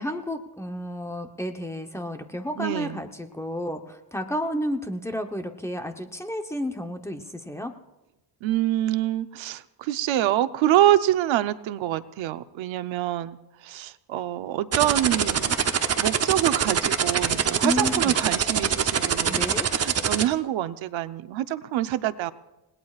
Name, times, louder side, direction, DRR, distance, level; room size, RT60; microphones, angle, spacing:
voice 1, 0.0-7.7 17.6-18.3 19.2-19.7, equal, 5° left, 5 dB, 0.8 m, -31 dB
voice 2, 2.6-3.0 8.4-13.4 13.6-15.6 15.9-19.4 19.7-22.3, right 13 dB, 90° right, 11 dB, 0.8 m, -26 dB
sound 1, 14.7-20.2, right 7 dB, 35° right, 0.8 m, -23 dB
30.0 x 18.0 x 2.4 m, 1.0 s
cardioid pair, 145°, 45 cm